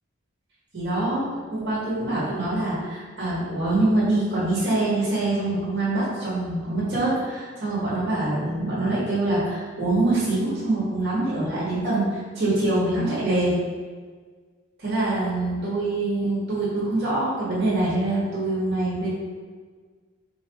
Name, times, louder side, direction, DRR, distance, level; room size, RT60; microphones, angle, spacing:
voice 1, 0.7-13.5 14.8-19.1, right 2 dB, 55° right, -10 dB, 1.5 m, -24 dB
5.0 x 3.0 x 3.5 m, 1.5 s
head